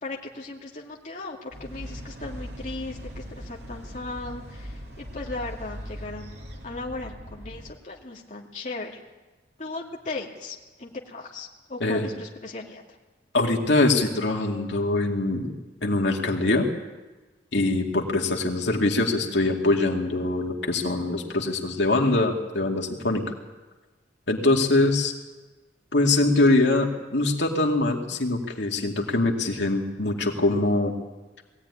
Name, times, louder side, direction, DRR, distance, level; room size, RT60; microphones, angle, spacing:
voice 1, 0.0-6.3 6.6-9.0 9.6-13.0, left 3 dB, 40° left, -2 dB, 2.4 m, -37 dB
sound 1, 1.5-7.7, equal, 65° right, 3.0 m, -40 dB
voice 2, 13.3-15.5 15.8-16.7 17.5-23.2 24.3-25.1 25.9-30.9, left 2 dB, 80° left, 1 dB, 2.4 m, -23 dB
20.5 x 16.0 x 9.8 m, 1.2 s
head